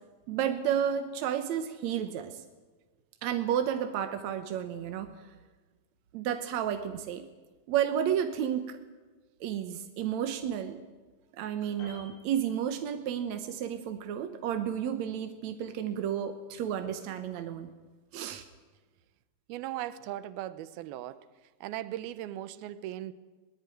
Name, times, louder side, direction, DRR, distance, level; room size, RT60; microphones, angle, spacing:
voice 1, 0.3-2.4 3.2-5.2 6.1-7.3 7.7-8.8 9.4-10.8 11.3-17.7 18.1-18.4, right 9 dB, 65° right, 8 dB, 1.9 m, -31 dB
Piano, 11.8-13.2 13.5-13.8, left 2 dB, 80° left, 10.0 m, -53 dB
voice 2, 19.5-21.2 21.6-23.1, right 13 dB, 85° right, 15 dB, 2.8 m, -38 dB
21.5 x 19.0 x 9.2 m, 1.3 s
omnidirectional pair, 4.3 m